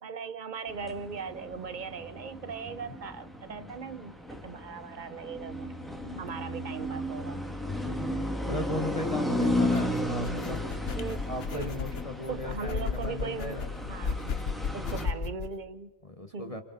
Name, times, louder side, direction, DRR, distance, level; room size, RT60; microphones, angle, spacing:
voice 1, 0.0-5.7 6.2-7.4 10.9-11.2 11.5-11.7 12.3-13.6 13.9-14.2 14.7-15.9 16.3-16.5, right 5 dB, 45° right, 13 dB, 0.9 m, -39 dB
sound 1, 0.7-15.1, left 1 dB, ahead, 2.4 m, -34 dB
voice 2, 7.6-10.7 11.3-13.7 15.0-15.1 16.0-16.6, left 2 dB, 30° left, 6 dB, 1.6 m, -37 dB
sound 2, 9.4-15.5, left 5 dB, 65° left, 1.2 m, -35 dB
30.0 x 27.5 x 4.1 m, 1.4 s
omnidirectional pair, 1.2 m